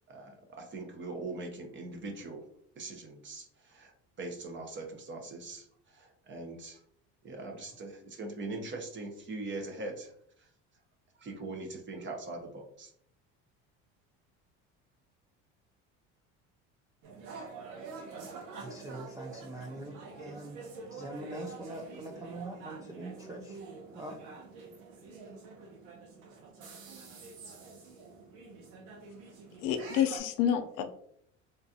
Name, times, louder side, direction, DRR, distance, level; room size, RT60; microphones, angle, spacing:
voice 1, 0.0-2.5 2.8-6.8 7.2-10.5 11.1-12.9, right 2 dB, 35° right, 3 dB, 0.9 m, -41 dB
sound 1, 17.0-30.2, right 4 dB, 80° right, 1.0 m, -47 dB
voice 2, 18.6-20.6 20.9-23.6 23.9-24.2, right 1 dB, 10° right, 1 dB, 0.3 m, -43 dB
voice 3, 29.6-30.8, left 9 dB, 75° left, 7 dB, 0.6 m, -28 dB
3.8 x 2.5 x 2.7 m, 0.66 s
supercardioid pair, 100°, 32 cm